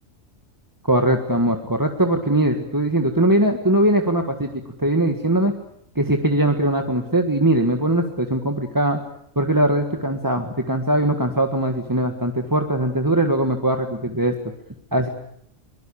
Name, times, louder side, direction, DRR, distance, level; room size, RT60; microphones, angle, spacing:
voice 1, 0.8-4.5 4.8-5.5 5.9-9.0 9.3-14.4 14.9-15.1, right 1 dB, 15° right, 4 dB, 1.7 m, -20 dB
23.5 x 22.0 x 8.7 m, 0.72 s
omnidirectional pair, 1.4 m